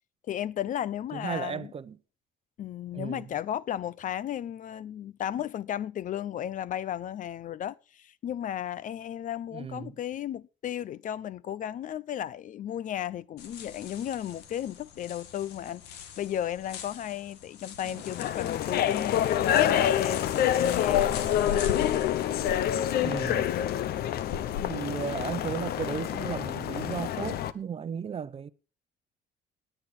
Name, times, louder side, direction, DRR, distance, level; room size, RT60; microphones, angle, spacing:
voice 1, 0.3-1.7 2.6-21.1 24.6-25.0, left 10 dB, 50° left, 0.6 m, -34 dB
voice 2, 1.1-2.0 2.9-3.3 9.5-9.9 23.0-23.5 24.7-28.5, right 7 dB, 35° right, 0.8 m, -35 dB
sound 1, 13.4-24.7, left 7 dB, 85° left, 2.0 m, -41 dB
sound 2, 17.9-27.5, left 11 dB, 70° left, 0.9 m, -27 dB
17.5 x 9.0 x 4.3 m
cardioid pair, 110°, 17 cm